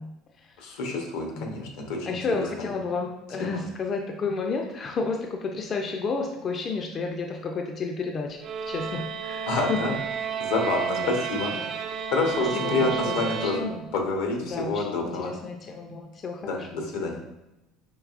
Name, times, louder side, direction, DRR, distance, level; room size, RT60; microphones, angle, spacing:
voice 1, 0.0-0.7 1.4-1.5 2.0-8.4 8.7-10.0 11.0-11.2 11.5-11.8 12.4-13.9 14.4-17.2, left 4 dB, 35° left, 2 dB, 0.4 m, -32 dB
voice 2, 0.6-2.4 3.4-3.6 9.5-9.9 10.4-11.5 12.1-13.6 13.9-15.3 16.4-17.2, left 3 dB, 80° left, 2 dB, 0.9 m, -28 dB
sound 1, 8.4-14.1, right 8 dB, 50° right, 0.4 m, -31 dB
4.6 x 3.2 x 2.4 m, 0.93 s
supercardioid pair, 120°, 0 cm